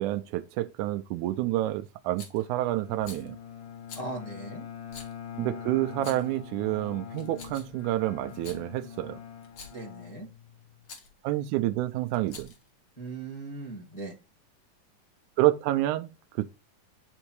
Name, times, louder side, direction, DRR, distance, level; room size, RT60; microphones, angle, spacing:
voice 1, 0.0-3.4 5.4-9.2 11.2-12.5 15.4-16.4, right 15 dB, 85° right, 1.7 m, -28 dB
Rattle, 2.2-2.4 3.0-3.3 3.9-4.1 4.9-5.1 5.9-6.4 7.1-7.8 8.3-8.6 9.4-9.8 10.8-11.1 12.1-12.7, left 4 dB, 55° left, 1.3 m, -46 dB
Bowed string instrument, 2.4-10.9, left 8 dB, 70° left, 2.9 m, -44 dB
voice 2, 3.9-4.6 9.7-10.3 13.0-14.2, right 2 dB, 20° left, 1.1 m, -39 dB
10.0 x 3.6 x 3.1 m
omnidirectional pair, 4.0 m